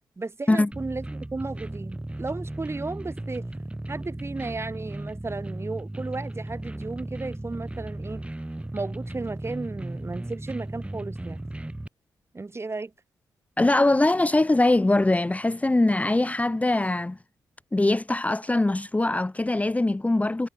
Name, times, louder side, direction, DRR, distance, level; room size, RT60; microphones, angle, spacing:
voice 1, 0.2-3.5 3.9-8.2 8.7-11.4 12.3-12.9, right 3 dB, 30° right, 6.3 m, -34 dB
sound 1, 0.7-11.9, right 1 dB, 15° right, 7.4 m, -36 dB
voice 2, 13.6-17.2 17.7-20.5, left 2 dB, 15° left, 1.1 m, -22 dB
cardioid pair, 65°, 8 cm